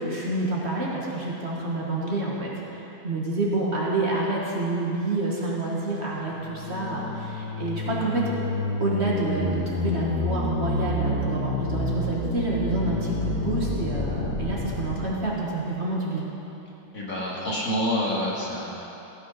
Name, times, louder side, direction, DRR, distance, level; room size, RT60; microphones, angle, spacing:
voice 1, 0.0-8.3 8.8-16.2, right 2 dB, 45° right, -4 dB, 1.8 m, -28 dB
sound 1, 6.3-15.1, left 2 dB, 90° left, 1.8 m, -29 dB
voice 2, 16.9-18.8, equal, 60° left, -6 dB, 2.6 m, -27 dB
15.5 x 6.6 x 5.6 m, 3.0 s
omnidirectional pair, 1.6 m